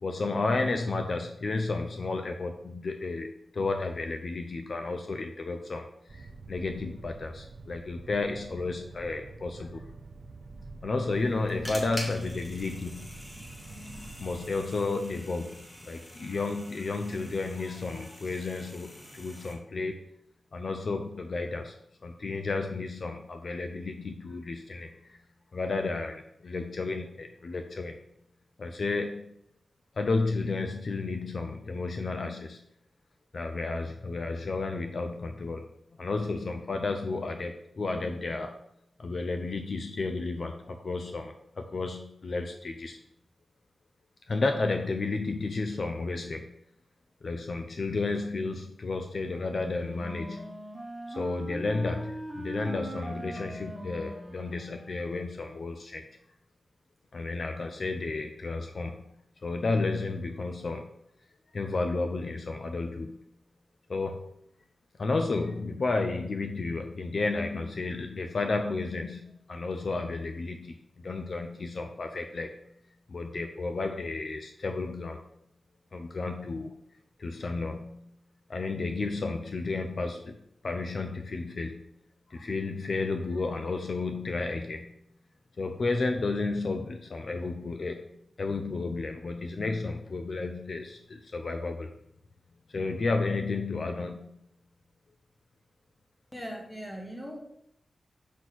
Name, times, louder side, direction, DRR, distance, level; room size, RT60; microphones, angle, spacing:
voice 1, 0.0-9.9 10.8-13.1 13.9-20.0 20.5-21.8 22.0-25.2 25.5-28.0 28.6-29.3 29.9-32.6 33.3-35.7 36.0-38.6 39.0-43.0 44.3-46.5 47.2-50.6 51.1-56.1 57.1-59.0 59.4-60.9 61.5-63.2 63.9-64.3 64.9-72.5 73.1-75.2 75.9-76.8 77.2-78.1 78.5-80.4 80.6-81.8 82.3-85.0 85.6-88.0 88.4-91.9 92.7-94.3, left 3 dB, 50° left, 5 dB, 0.5 m, -32 dB
sound 1, 6.1-14.6, right 3 dB, 50° right, 0.4 m, -47 dB
sound 2, 11.1-19.5, equal, 25° left, 1.7 m, -45 dB
Wind instrument woodwind instrument, 49.2-55.3, right 1 dB, 15° right, 1.5 m, -41 dB
voice 2, 96.3-97.4, equal, 10° left, 1 dB, 1.4 m, -39 dB
6.1 x 6.1 x 4.1 m, 0.75 s
wide cardioid pair, 145°, 0 cm